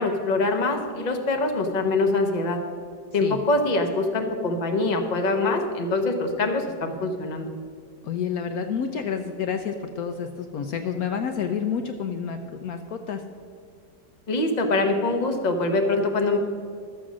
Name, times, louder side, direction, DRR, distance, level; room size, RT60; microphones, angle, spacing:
voice 1, 0.0-2.6 3.1-7.5 14.3-16.4, left 2 dB, 30° left, 4 dB, 0.9 m, -24 dB
voice 2, 8.0-13.2, left 7 dB, 70° left, 7 dB, 1.0 m, -29 dB
12.5 x 7.4 x 6.2 m, 2.1 s
omnidirectional pair, 1.8 m